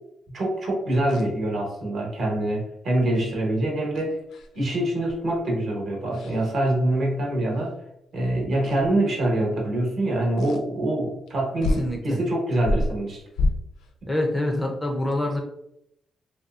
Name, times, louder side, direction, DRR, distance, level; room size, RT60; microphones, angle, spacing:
voice 1, 0.3-4.2 4.5-7.7 8.1-13.2, right 1 dB, 50° right, -1 dB, 1.0 m, -25 dB
sound 1, 1.1-1.3 3.9-4.6 5.1-5.4 6.1-6.5 7.6-7.7 8.6-8.9 10.4-10.6 11.3-11.4 11.6-11.9 12.6-13.9, left 2 dB, 85° left, 0.4 m, -28 dB
voice 2, 11.8-12.2 14.1-15.4, left 1 dB, 10° left, 1 dB, 0.4 m, -26 dB
3.0 x 2.6 x 2.3 m, 0.77 s
cardioid pair, 155°, 0 cm